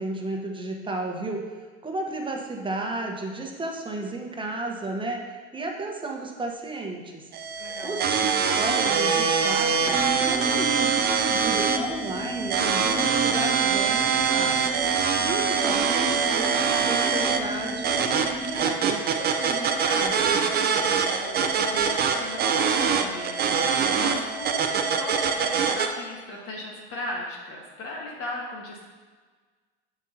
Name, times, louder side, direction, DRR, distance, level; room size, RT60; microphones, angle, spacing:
voice 1, 0.0-7.3 7.8-17.9 18.2-20.5 23.8-24.2, right 2 dB, 15° right, 1 dB, 1.2 m, -33 dB
sound 1, 7.3-25.9, right 6 dB, 30° right, 0.7 m, -24 dB
voice 2, 7.6-8.0 20.9-28.8, left 2 dB, 45° left, -1 dB, 1.5 m, -38 dB
sound 2, 9.8-18.7, left 1 dB, 5° left, 0.8 m, -35 dB
7.3 x 7.3 x 2.8 m, 1.4 s
hypercardioid pair, 85°, 31 cm